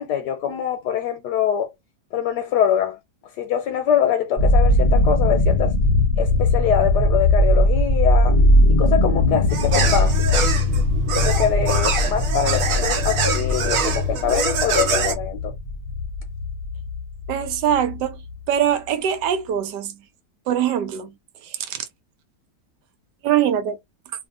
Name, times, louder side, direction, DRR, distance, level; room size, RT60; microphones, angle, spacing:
voice 1, 0.0-1.7 2.1-3.0 3.4-5.7 6.2-8.4 8.8-10.5 11.1-15.5, left 9 dB, 80° left, 1.2 m, -23 dB
sound 1, 4.4-18.3, left 1 dB, 35° left, 0.7 m, -20 dB
sound 2, 9.5-15.1, right 5 dB, 60° right, 1.1 m, -25 dB
voice 2, 17.3-18.2 18.5-20.0 20.5-21.2 21.4-21.8 23.2-23.8, right 10 dB, 80° right, 1.3 m, -22 dB
2.7 x 2.6 x 2.4 m
omnidirectional pair, 1.8 m